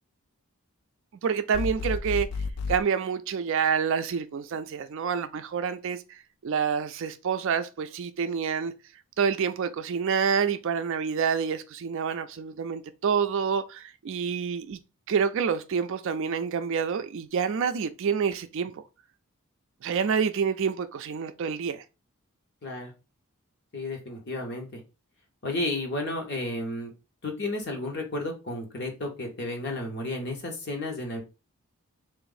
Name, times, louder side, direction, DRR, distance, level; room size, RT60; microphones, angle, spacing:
voice 1, 1.2-2.3 2.7-8.7 9.2-14.8 15.1-18.8 19.8-21.8, right 6 dB, 60° right, 0.4 m, -28 dB
sound 1, 1.5-2.8, left 4 dB, 80° left, 0.3 m, -31 dB
voice 2, 22.6-22.9 23.7-24.8 25.4-26.9 27.2-31.2, left 2 dB, 50° left, 1.1 m, -32 dB
3.5 x 2.5 x 3.9 m
head